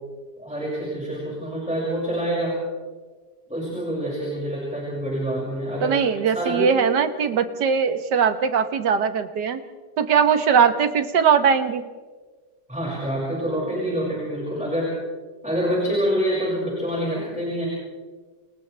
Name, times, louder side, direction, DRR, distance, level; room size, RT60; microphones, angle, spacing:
voice 1, 0.4-2.6 3.5-5.9 6.2-6.7 12.7-15.0 15.4-17.7, equal, 5° right, -5 dB, 6.1 m, -26 dB
voice 2, 5.8-9.6 10.0-11.8, right 6 dB, 80° right, 9 dB, 1.8 m, -20 dB
29.5 x 29.0 x 3.4 m, 1.4 s
omnidirectional pair, 1.8 m